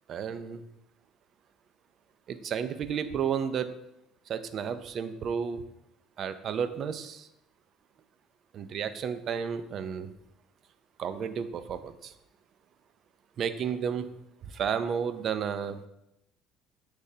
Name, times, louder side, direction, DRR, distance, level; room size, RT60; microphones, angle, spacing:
voice 1, 0.1-0.6 2.3-3.7 4.3-5.6 6.2-7.3 8.5-10.1 11.0-12.1 13.4-14.1 14.4-15.8, right 7 dB, 50° right, 11 dB, 0.5 m, -32 dB
9.8 x 3.4 x 2.8 m, 0.84 s
supercardioid pair, 95°, 0 cm